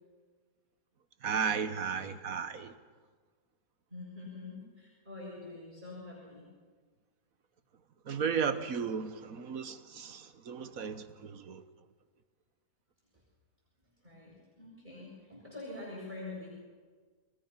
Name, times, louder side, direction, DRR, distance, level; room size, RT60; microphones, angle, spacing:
voice 1, 1.2-2.7 8.1-11.6, right 6 dB, 65° right, 1.5 m, -34 dB
voice 2, 3.9-6.5 14.0-16.5, left 2 dB, 30° right, 7.5 m, -45 dB
29.0 x 22.0 x 5.8 m
omnidirectional pair, 1.6 m